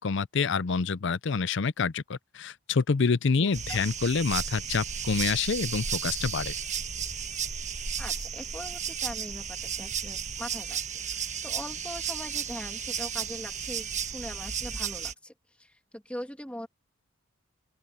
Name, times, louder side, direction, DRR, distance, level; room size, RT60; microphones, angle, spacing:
voice 1, 0.0-6.5, left 5 dB, 60° left, 0.5 m, -27 dB
voice 2, 3.4-3.8 8.0-10.8 11.1-16.7, left 1 dB, 5° left, 2.4 m, -41 dB
sound 1, 3.5-15.1, right 7 dB, 35° right, 1.4 m, -34 dB
open air
head